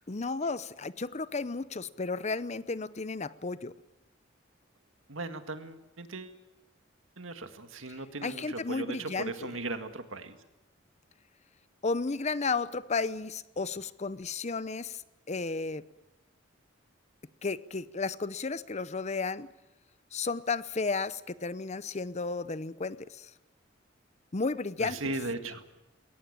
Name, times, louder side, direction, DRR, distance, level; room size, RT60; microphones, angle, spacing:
voice 1, 0.1-3.7 7.9-9.5 11.8-15.0 15.3-15.8 17.4-19.5 20.1-23.3 24.3-25.1, left 4 dB, 35° left, 16 dB, 0.7 m, -33 dB
voice 2, 5.1-6.3 7.2-10.4 24.8-25.6, right 2 dB, 80° right, 8 dB, 2.0 m, -37 dB
21.5 x 18.0 x 8.9 m, 0.98 s
head